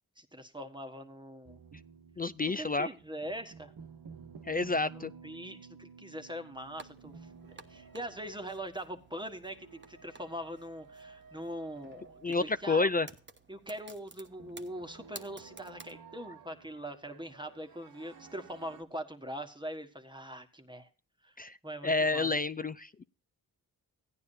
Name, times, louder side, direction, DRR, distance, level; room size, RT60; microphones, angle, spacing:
voice 1, 0.2-1.6 2.6-3.7 4.9-7.1 7.7-12.9 13.5-20.9 21.2-21.3 21.6-22.3, equal, 10° right, 1.5 m, -42 dB
sound 1, 1.4-18.8, right 5 dB, 50° right, 1.1 m, -54 dB
voice 2, 2.2-2.9 4.5-5.1 12.2-13.1 21.4-21.6 21.8-23.0, left 3 dB, 20° left, 0.4 m, -29 dB
sound 2, 6.5-16.0, right 3 dB, 25° right, 1.2 m, -55 dB
15.5 x 9.6 x 2.7 m
cardioid pair, 50°, 43 cm